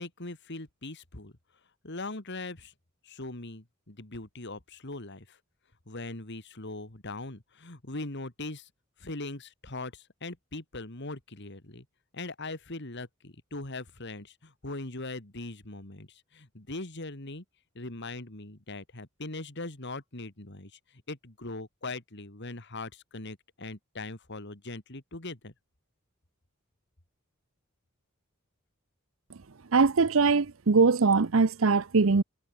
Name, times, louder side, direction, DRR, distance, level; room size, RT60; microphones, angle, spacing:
voice 1, 0.0-1.3 1.8-2.7 3.0-5.4 5.9-8.7 9.0-11.8 12.1-17.4 17.7-25.5, left 2 dB, 55° left, 2.7 m, -40 dB
voice 2, 29.7-32.2, right 4 dB, 70° right, 0.7 m, -22 dB
head